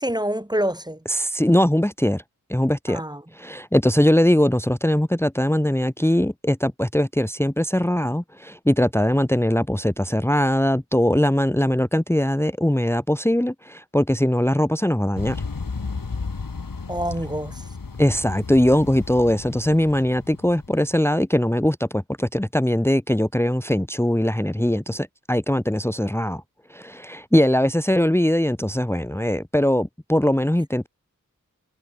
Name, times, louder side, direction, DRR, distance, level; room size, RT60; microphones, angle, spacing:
voice 1, 0.0-1.0 2.9-3.2 16.9-17.6, right 1 dB, 10° right, 1.6 m, -26 dB
voice 2, 1.1-2.2 2.5-3.0 3.3-15.4 18.0-26.4 26.7-30.9, left 1 dB, 5° left, 1.3 m, -21 dB
sound 1, 15.2-21.0, left 4 dB, 85° left, 3.2 m, -34 dB
wide cardioid pair, 40°, 33 cm